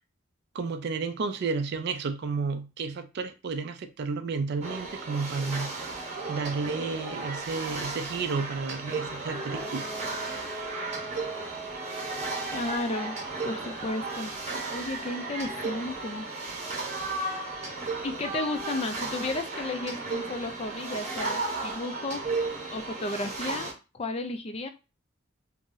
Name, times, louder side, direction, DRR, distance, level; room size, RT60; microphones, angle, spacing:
voice 1, 0.5-5.7 6.3-9.9, right 4 dB, 50° right, 0.4 m, -32 dB
sound 1, 4.6-23.7, right 3 dB, 35° right, 0.8 m, -34 dB
sound 2, 9.5-14.2, right 1 dB, 5° right, 0.7 m, -43 dB
voice 2, 12.5-13.2 13.4-14.3 14.7-16.3 18.0-23.7 23.9-24.7, left 2 dB, 30° left, 0.3 m, -33 dB
2.6 x 2.0 x 3.7 m
head